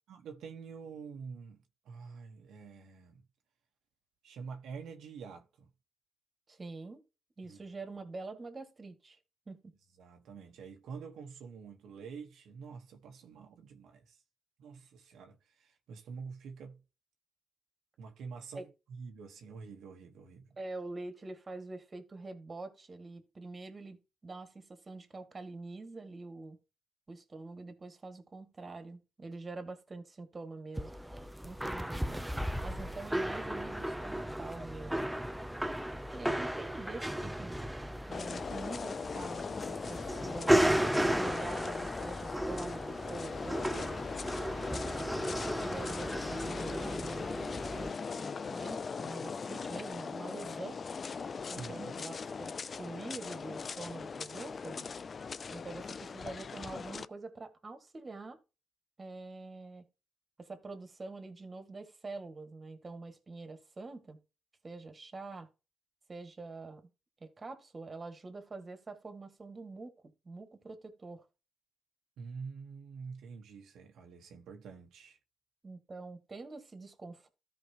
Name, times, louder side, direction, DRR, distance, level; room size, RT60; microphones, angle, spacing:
voice 1, 0.1-3.2 4.2-5.7 7.4-7.6 10.0-14.2 14.6-16.8 18.0-20.4 51.5-51.9 72.2-75.2, right 5 dB, 75° right, 1.2 m, -47 dB
voice 2, 6.5-7.0 7.4-9.2 9.5-9.7 18.5-18.7 20.6-26.6 27.1-30.9 31.4-32.3 32.6-35.0 36.1-37.6 38.1-44.0 44.7-47.4 47.8-50.8 51.5-54.9 55.5-58.4 59.0-59.9 60.4-64.2 64.6-65.5 66.1-66.8 67.2-71.3 75.6-77.3, right 3 dB, 30° right, 1.9 m, -45 dB
sound 1, 30.8-47.9, right 1 dB, 5° right, 0.6 m, -34 dB
sound 2, 38.1-57.0, left 5 dB, 40° left, 0.4 m, -40 dB
13.5 x 4.8 x 2.9 m
cardioid pair, 90°, 0 cm